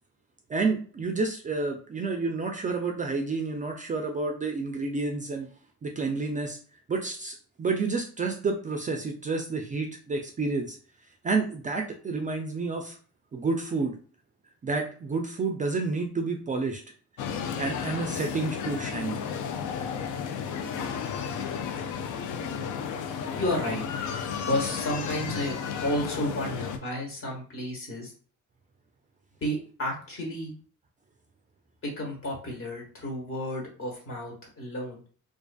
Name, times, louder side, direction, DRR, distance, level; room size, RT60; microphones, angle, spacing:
voice 1, 0.5-5.5 5.8-6.6 6.9-10.8 11.2-13.0 13.3-14.0 14.6-16.8 17.6-19.2, right 3 dB, 25° right, 3 dB, 0.3 m, -29 dB
sound 1, 17.2-26.8, left 7 dB, 80° left, 0.4 m, -33 dB
voice 2, 23.4-23.8 24.4-25.5 25.8-28.1 29.4-30.5 31.8-35.0, left 1 dB, 45° left, -1 dB, 1.2 m, -31 dB
2.5 x 2.4 x 2.3 m, 0.42 s
cardioid pair, 90°, 30 cm